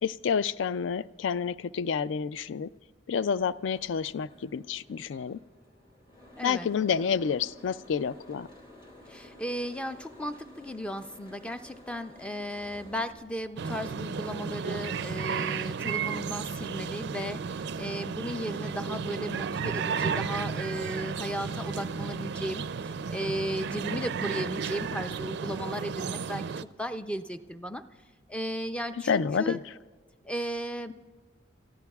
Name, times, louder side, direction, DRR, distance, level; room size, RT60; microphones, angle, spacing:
voice 1, 0.0-2.7 3.1-5.4 6.4-8.5 29.1-29.7, left 6 dB, 70° left, 17 dB, 0.3 m, -29 dB
Boat Water vehicle, 3.3-13.1, left 1 dB, 25° left, 2.2 m, -53 dB
voice 2, 6.4-6.7 9.1-27.8 28.3-29.6 30.2-30.9, equal, 5° left, 9 dB, 0.4 m, -35 dB
sound 1, 12.5-24.0, left 2 dB, 50° left, 4.0 m, -58 dB
sound 2, 13.6-26.6, right 6 dB, 55° right, 0.4 m, -33 dB
30.0 x 14.0 x 2.3 m, 1.5 s
head